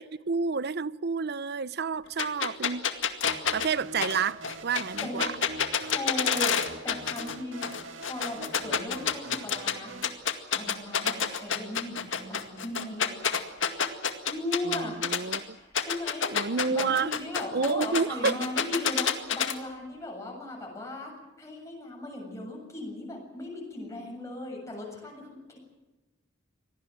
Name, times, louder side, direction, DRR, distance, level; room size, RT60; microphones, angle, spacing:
voice 1, 0.0-2.8 3.5-5.3 14.6-15.5 16.3-17.1 17.5-18.4, right 5 dB, 55° right, 0.7 m, -29 dB
sound 1, 2.2-7.4 7.6-9.7 10.0-15.4 15.8-19.5, left 7 dB, 70° left, 2.1 m, -28 dB
sound 2, 3.2-10.1, right 2 dB, 75° right, 2.2 m, -44 dB
voice 2, 5.0-5.3 5.8-7.7 8.0-9.9 10.5-13.1 14.3-15.0 15.6-21.1 21.4-25.6, left 1 dB, 15° left, 7.5 m, -37 dB
25.5 x 18.5 x 7.8 m
head